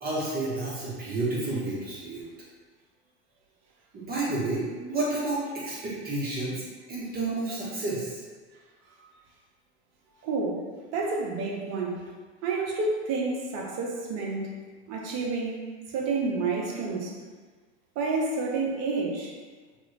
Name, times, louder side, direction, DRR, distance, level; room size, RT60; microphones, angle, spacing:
voice 1, 0.0-2.2 3.9-8.2, right 2 dB, 25° right, -7 dB, 1.1 m, -30 dB
voice 2, 10.2-10.6 10.9-12.0 12.4-14.5 14.9-15.6 15.9-17.1 18.0-19.3, right 3 dB, 50° right, -1 dB, 0.8 m, -29 dB
3.0 x 2.4 x 3.2 m, 1.4 s
hypercardioid pair, 90°, 34 cm